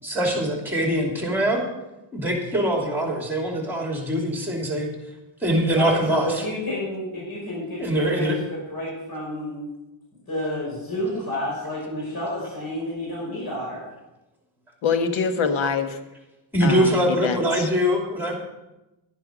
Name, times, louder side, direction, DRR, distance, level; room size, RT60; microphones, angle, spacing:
voice 1, 0.0-1.6 2.1-4.9 5.4-6.4 7.8-8.4 16.5-18.3, right 1 dB, 5° right, 1 dB, 2.8 m, -23 dB
voice 2, 5.7-9.7 10.3-13.9, left 1 dB, 45° left, -5 dB, 5.4 m, -30 dB
voice 3, 14.8-16.0 16.6-17.7, left 6 dB, 70° left, 9 dB, 1.3 m, -25 dB
11.0 x 10.5 x 5.0 m, 0.99 s
cardioid pair, 110°, 48 cm